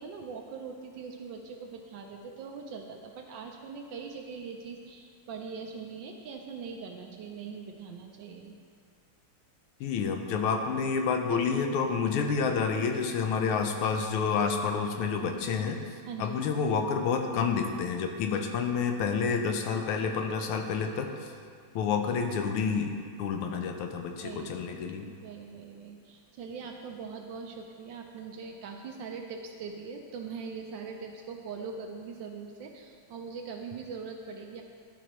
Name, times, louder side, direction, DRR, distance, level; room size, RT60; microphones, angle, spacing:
voice 1, 0.0-8.5 16.1-16.4 24.2-24.6 25.1-34.6, right 5 dB, 70° right, 2 dB, 1.2 m, -41 dB
voice 2, 9.8-15.8 16.2-21.1 21.7-22.9 23.2-25.0, left 5 dB, 85° left, 4 dB, 1.6 m, -29 dB
12.5 x 5.0 x 3.1 m, 2.2 s
omnidirectional pair, 2.3 m